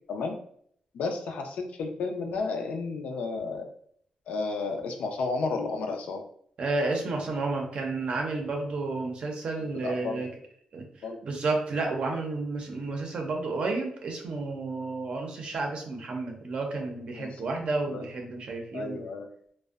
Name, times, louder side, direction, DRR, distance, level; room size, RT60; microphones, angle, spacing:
voice 1, 0.9-3.7 4.3-6.2 9.8-10.2 11.0-11.2 17.2-17.5 17.9-18.0 18.7-19.3, left 4 dB, 80° left, 4 dB, 0.4 m, -32 dB
voice 2, 6.6-10.3 10.7-10.9 11.2-19.1, right 3 dB, 50° right, 2 dB, 0.5 m, -31 dB
2.5 x 2.1 x 2.3 m, 0.63 s
wide cardioid pair, 150°, 2 cm